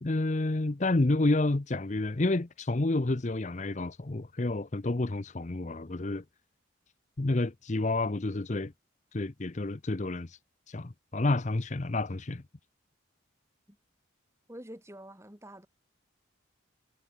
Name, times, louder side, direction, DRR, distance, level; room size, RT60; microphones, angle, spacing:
voice 1, 0.0-6.2 7.2-8.7 9.1-10.4 10.7-12.4, left 2 dB, 35° left, 0.7 m, -29 dB
voice 2, 14.5-15.7, right 1 dB, 15° right, 5.3 m, -47 dB
head